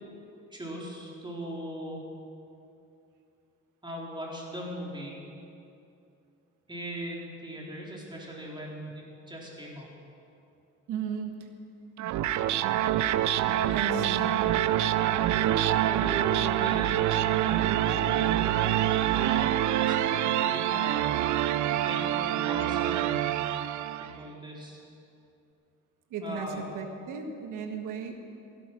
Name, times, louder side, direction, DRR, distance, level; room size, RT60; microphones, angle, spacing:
voice 1, 0.5-2.0 3.8-5.2 6.7-9.9 15.8-18.6 19.1-21.1 21.8-23.2 24.0-24.8 26.2-26.6, right 1 dB, 15° right, -3 dB, 4.2 m, -39 dB
voice 2, 10.9-11.5 13.7-14.5 26.1-28.1, right 5 dB, 85° right, 5 dB, 1.6 m, -35 dB
sound 1, 12.0-24.2, right 12 dB, 70° right, 0.6 m, -26 dB
16.5 x 11.5 x 6.1 m, 2.6 s
cardioid pair, 90°, 30 cm